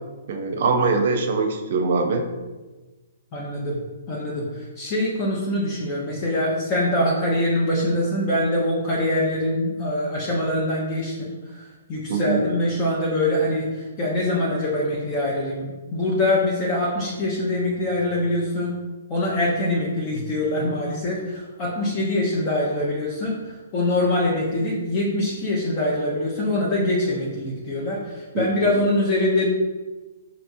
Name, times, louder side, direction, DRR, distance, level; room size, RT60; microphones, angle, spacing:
voice 1, 0.3-2.2 12.1-12.4 28.3-28.8, right 4 dB, 60° right, 4 dB, 0.6 m, -23 dB
voice 2, 3.3-3.8 4.1-18.7 19.1-29.5, left 1 dB, 35° left, -5 dB, 0.8 m, -24 dB
4.5 x 2.9 x 2.6 m, 1.2 s
hypercardioid pair, 135°, 0 cm